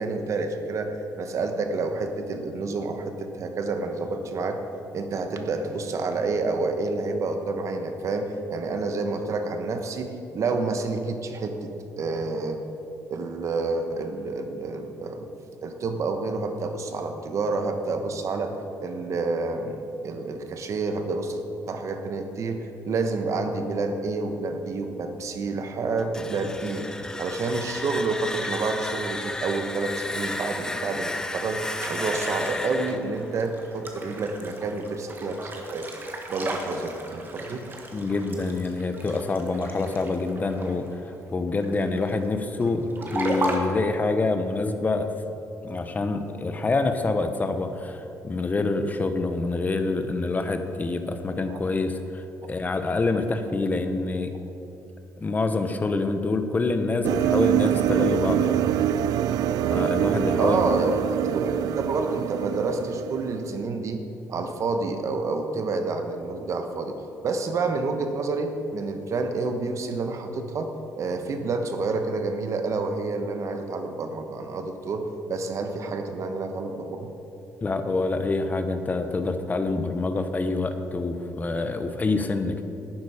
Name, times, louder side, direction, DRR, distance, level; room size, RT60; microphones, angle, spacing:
voice 1, 0.0-4.6 4.9-11.7 12.0-12.6 13.1-15.3 15.6-18.5 18.8-21.4 21.7-26.9 27.2-35.9 36.3-37.7 43.9-44.3 51.5-51.6 60.4-61.0 61.3-64.0 64.3-67.0 67.2-70.7 71.0-77.1, right 3 dB, 55° right, 6 dB, 1.1 m, -29 dB
sound 1, 26.0-34.8, left 1 dB, 10° left, 0.6 m, -33 dB
sound 2, 28.3-41.3 41.5-43.6, right 2 dB, 35° right, 1.6 m, -36 dB
voice 2, 37.9-45.1 45.6-54.3 55.2-58.6 59.7-60.6 77.6-82.6, left 3 dB, 25° left, 8 dB, 0.9 m, -26 dB
sound 3, 57.0-63.7, right 11 dB, 80° right, 0.3 m, -25 dB
12.0 x 9.2 x 4.9 m, 2.8 s
cardioid pair, 110°, 6 cm